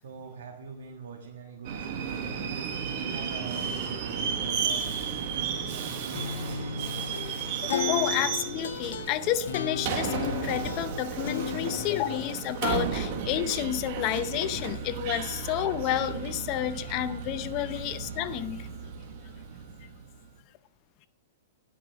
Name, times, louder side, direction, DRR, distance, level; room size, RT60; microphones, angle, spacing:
voice 1, 0.0-2.6 2.9-3.9 4.1-6.9 15.3-15.4 17.7-17.9, right 5 dB, 80° right, 1.4 m, -45 dB
Subway metro underground, 1.6-20.1, right 6 dB, 45° right, 1.3 m, -34 dB
sound 1, 6.1-12.3, left 8 dB, 85° left, 0.8 m, -35 dB
voice 2, 7.6-18.7, left 12 dB, 35° left, 0.6 m, -30 dB
10.5 x 5.8 x 5.7 m
hypercardioid pair, 155°, 0 cm